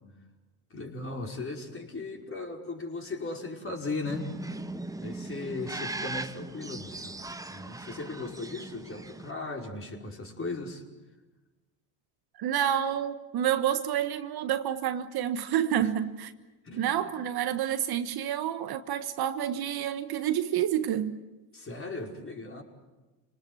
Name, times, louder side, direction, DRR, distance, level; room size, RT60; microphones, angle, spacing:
voice 1, 0.7-4.3 5.0-7.1 7.5-10.8 16.6-16.9 21.5-22.6, left 3 dB, 25° left, 5.2 m, -37 dB
sound 1, 4.0-9.3, right 2 dB, 5° right, 1.1 m, -39 dB
voice 2, 12.4-16.3 16.8-21.2, right 10 dB, 50° right, 1.4 m, -29 dB
29.0 x 19.0 x 7.8 m
supercardioid pair, 85°, 48 cm